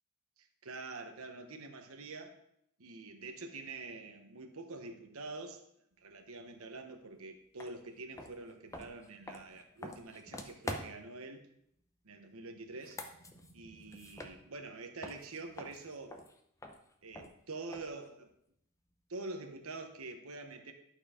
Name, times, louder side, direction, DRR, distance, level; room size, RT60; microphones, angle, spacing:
voice 1, 0.4-2.4 2.8-5.6 6.0-11.4 12.0-13.0 13.5-16.2 17.0-18.3 19.1-20.7, right 3 dB, 70° right, 5 dB, 1.1 m, -46 dB
sound 1, 7.6-7.7 8.1-11.2 12.7-14.8 15.0-18.1, left 1 dB, 15° left, 0.7 m, -46 dB
11.5 x 4.5 x 5.0 m, 0.75 s
head